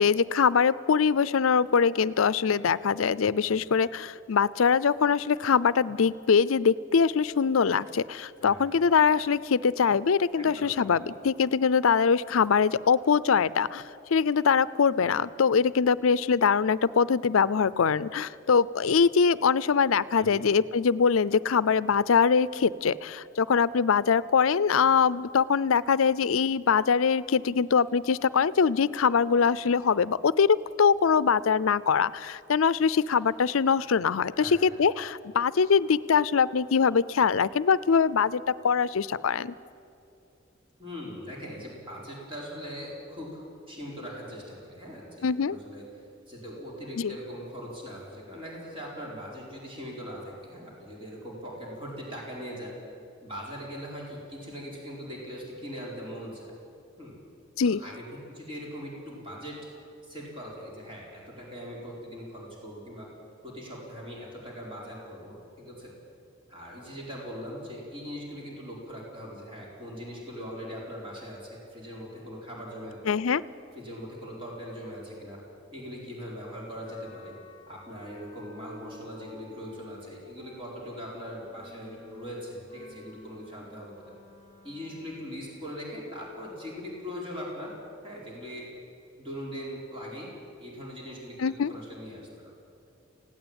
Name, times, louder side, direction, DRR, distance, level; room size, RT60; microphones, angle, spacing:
voice 1, 0.0-13.8 14.1-39.5 45.2-45.6 47.0-47.1 57.6-57.8 73.1-73.4 91.4-91.7, left 6 dB, 90° left, 18 dB, 0.5 m, -23 dB
voice 2, 8.4-8.8 10.3-11.2 20.2-20.4 34.3-34.6 40.8-43.4 43.7-45.8 46.3-52.7 53.2-56.6 57.0-57.2 57.6-59.7 60.0-63.1 63.4-66.0 66.5-73.0 73.7-75.4 75.7-77.3 77.7-84.2 84.6-87.7 88.0-88.7 89.2-90.3 90.6-92.5, equal, 25° right, -4 dB, 4.4 m, -41 dB
Wind instrument woodwind instrument, 76.8-85.5, left 1 dB, 20° left, 3.8 m, -52 dB
19.5 x 16.5 x 8.8 m, 2.7 s
head